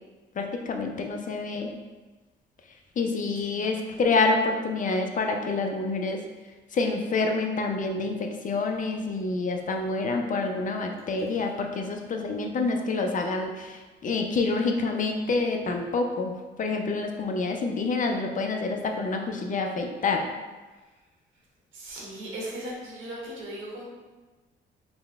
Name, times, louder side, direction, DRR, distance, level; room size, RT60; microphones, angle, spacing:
voice 1, 0.4-1.7 3.0-6.2 6.7-16.3 16.6-20.3, left 3 dB, 40° left, 3 dB, 0.5 m, -27 dB
voice 2, 21.7-23.8, right 1 dB, 80° right, -4 dB, 1.2 m, -38 dB
3.9 x 2.1 x 3.4 m, 1.3 s
cardioid pair, 90°, 20 cm